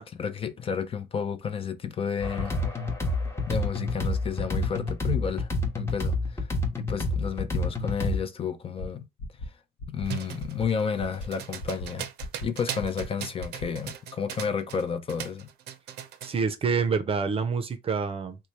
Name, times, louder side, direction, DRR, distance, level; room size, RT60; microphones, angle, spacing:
voice 1, 0.0-2.5 3.4-9.1 9.4-9.5 9.9-12.1 12.4-15.5, left 6 dB, 35° left, 0.5 m, -31 dB
sound 1, 2.2-8.2, left 2 dB, 15° left, 0.8 m, -28 dB
sound 2, 8.8-8.9 9.2-9.5 9.8-10.1 10.4-10.7 11.0-11.3 11.6-11.9 12.2-12.5 12.8-13.1 13.4-13.7, equal, 85° left, 0.9 m, -36 dB
sound 3, 10.0-14.8 15.1-16.4, right 10 dB, 75° right, 0.6 m, -38 dB
voice 2, 16.2-18.4, right 5 dB, 35° right, 0.5 m, -27 dB
3.1 x 2.2 x 4.1 m
cardioid pair, 110°, 17 cm